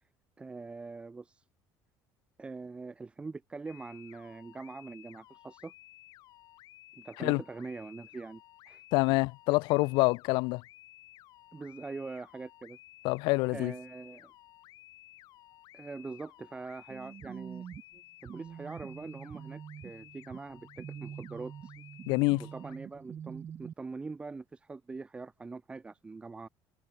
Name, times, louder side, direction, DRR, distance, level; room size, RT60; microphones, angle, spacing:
voice 1, 0.4-1.4 2.4-5.7 7.0-8.9 11.5-12.8 13.5-14.3 15.7-17.6 18.2-21.7 22.4-26.5, right 3 dB, 15° right, 2.3 m, -43 dB
sound 1, 3.7-22.8, left 16 dB, 55° left, 7.0 m, -56 dB
voice 2, 8.9-10.6 13.0-13.7 22.1-22.5, left 25 dB, 80° left, 0.8 m, -26 dB
sound 2, 16.9-23.7, right 8 dB, 30° right, 0.7 m, -46 dB
cardioid pair, 160°, 8 cm